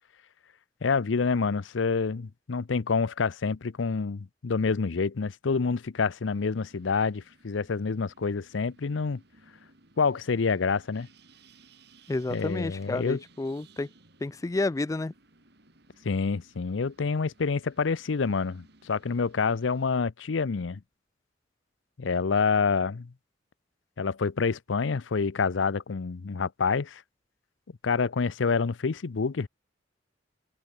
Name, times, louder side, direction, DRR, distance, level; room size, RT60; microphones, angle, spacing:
voice 1, 0.8-9.2 10.0-11.1 12.3-13.2 16.0-20.8 22.0-23.1 24.0-27.0 27.8-29.5, left 5 dB, 85° left, 0.6 m, -27 dB
sound 1, 6.2-20.0, right 3 dB, 60° right, 3.5 m, -60 dB
voice 2, 12.1-13.9 14.2-15.1, left 2 dB, 15° left, 0.3 m, -30 dB
head